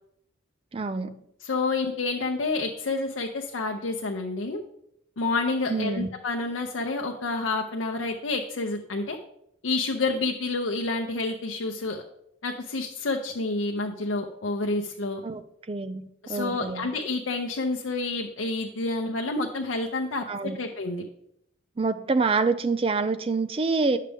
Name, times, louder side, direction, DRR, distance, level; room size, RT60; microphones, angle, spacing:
voice 1, 0.7-1.1 5.7-6.1 15.2-15.4 15.7-16.9 20.3-20.6 21.8-24.0, right 4 dB, 30° right, 11 dB, 0.4 m, -26 dB
voice 2, 1.4-4.6 5.2-9.2 9.6-12.0 12.4-15.2 16.2-21.0, left 3 dB, 85° left, 2 dB, 0.6 m, -29 dB
9.7 x 6.6 x 3.4 m, 0.76 s
head